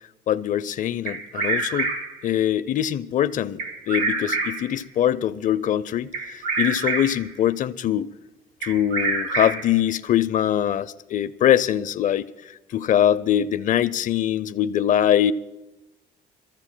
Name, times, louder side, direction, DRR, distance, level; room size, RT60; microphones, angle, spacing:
voice 1, 0.3-1.9 2.2-8.1 8.6-15.3, left 10 dB, 50° left, 0.6 m, -23 dB
Bird vocalization bird call bird song, 1.1-2.2 3.6-4.8 6.1-7.3 8.6-9.8, right 3 dB, 85° right, 1.6 m, -26 dB
27.0 x 14.5 x 2.2 m
cardioid pair, 110°, 17 cm